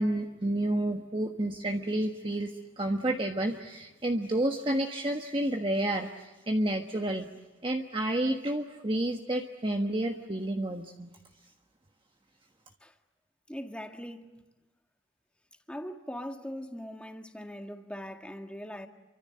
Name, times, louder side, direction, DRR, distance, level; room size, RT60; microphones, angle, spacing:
voice 1, 0.0-7.3 7.6-11.1, right 1 dB, 25° right, 1.4 m, -30 dB
voice 2, 13.5-14.3 15.7-18.9, equal, 5° left, 1.9 m, -40 dB
30.0 x 24.5 x 7.8 m
head